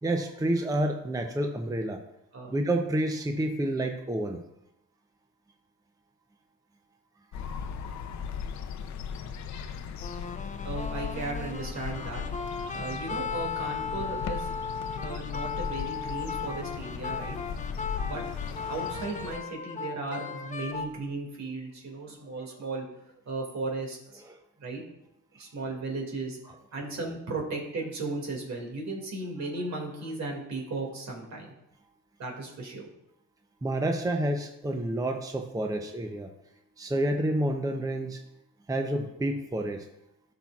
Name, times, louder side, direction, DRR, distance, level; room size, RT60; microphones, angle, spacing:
voice 1, 0.0-2.0 2.5-4.4 24.3-24.4 25.3-25.5 33.6-36.3 36.8-38.2 38.7-39.9, right 1 dB, 10° right, 5 dB, 0.6 m, -29 dB
sound 1, 7.3-19.4, left 7 dB, 65° left, 0.6 m, -37 dB
sound 2, 10.0-21.0, left 5 dB, 25° left, 0.6 m, -36 dB
voice 2, 10.6-12.2 12.7-14.5 15.0-17.4 18.1-18.2 18.7-22.9 23.3-24.2 24.6-24.8 25.4-26.4 26.7-31.5 32.2-32.9, right 3 dB, 65° right, 0 dB, 2.3 m, -35 dB
13.0 x 6.0 x 2.4 m, 0.84 s
cardioid pair, 90°, 30 cm